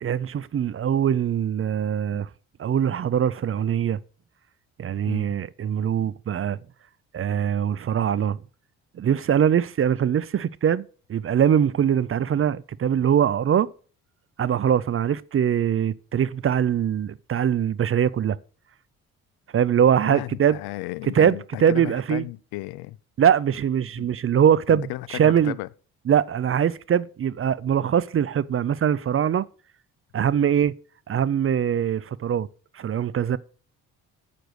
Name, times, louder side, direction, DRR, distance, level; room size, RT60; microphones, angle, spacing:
voice 1, 0.0-2.3 2.6-4.0 4.8-6.6 7.1-8.4 9.0-10.8 11.1-13.7 14.4-18.4 19.5-20.6 21.1-22.3 23.2-25.5 26.1-29.4 30.1-30.7 31.1-32.5 32.7-33.4, right 9 dB, 35° right, 0.5 m, -22 dB
voice 2, 20.0-23.0 24.0-24.1 24.7-25.7, left 19 dB, 70° left, 0.6 m, -34 dB
7.7 x 6.9 x 6.4 m
hypercardioid pair, 50°, 39 cm